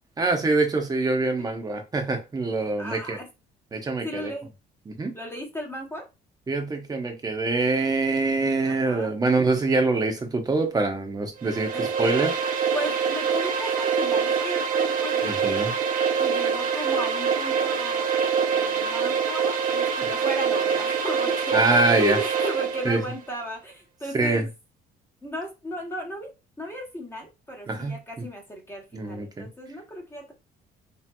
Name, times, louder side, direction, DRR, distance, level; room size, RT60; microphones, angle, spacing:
voice 1, 0.2-3.2 3.7-4.3 4.9-5.1 6.5-12.3 15.2-15.7 21.5-22.2 22.8-23.0 24.1-24.5 27.7-28.2 28.9-29.5, right 3 dB, 20° right, 4 dB, 0.8 m, -24 dB
voice 2, 2.8-3.3 4.0-4.5 5.1-6.0 8.6-9.2 11.7-12.4 12.7-15.6 16.2-24.5 25.2-26.3 26.6-30.3, equal, 15° left, 1 dB, 0.9 m, -35 dB
sound 1, 11.4-23.1, right 6 dB, 55° right, 0.6 m, -25 dB
3.1 x 2.9 x 2.2 m, 0.26 s
cardioid pair, 110°, 17 cm